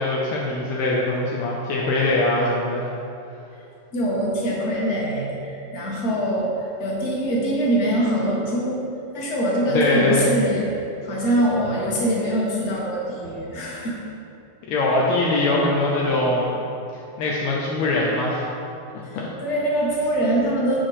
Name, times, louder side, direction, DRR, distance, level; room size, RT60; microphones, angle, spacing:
voice 1, 0.0-2.9 9.7-10.3 14.7-16.6 16.9-18.5 19.1-19.3, left 2 dB, 85° left, -3 dB, 1.7 m, -22 dB
voice 2, 3.9-8.9 9.1-10.7 11.0-14.0 19.0-20.8, right 1 dB, 40° left, -4 dB, 1.4 m, -23 dB
6.2 x 5.9 x 4.8 m, 2.8 s
omnidirectional pair, 2.4 m